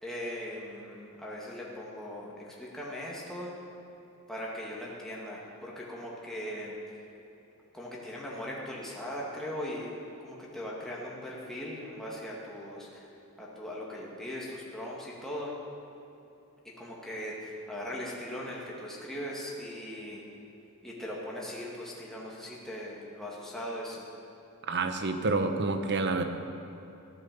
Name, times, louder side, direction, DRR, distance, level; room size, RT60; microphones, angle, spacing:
voice 1, 0.0-3.5 4.3-6.7 7.7-9.9 10.2-13.0 13.4-15.5 16.8-20.3 20.8-24.1, equal, ahead, -5 dB, 2.2 m, -39 dB
voice 2, 24.7-26.2, right 3 dB, 55° right, 7 dB, 1.1 m, -28 dB
14.5 x 12.0 x 6.9 m, 2.9 s
head